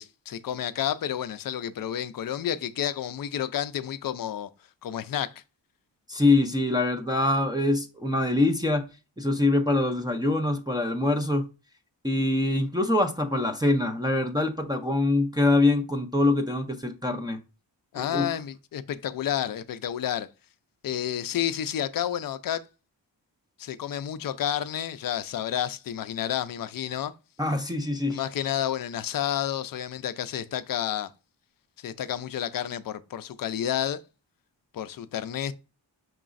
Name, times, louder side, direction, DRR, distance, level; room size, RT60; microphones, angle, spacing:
voice 1, 0.0-4.5 4.8-5.3 17.9-20.3 20.8-22.6 23.6-27.1 28.1-31.1 31.8-34.0 34.7-35.5, left 10 dB, 50° left, 0.5 m, -30 dB
voice 2, 6.1-8.9 9.2-11.5 12.0-17.4 18.0-18.3 27.4-28.2, left 2 dB, 10° right, 0.5 m, -24 dB
4.7 x 3.0 x 2.5 m
cardioid pair, 65°, 45 cm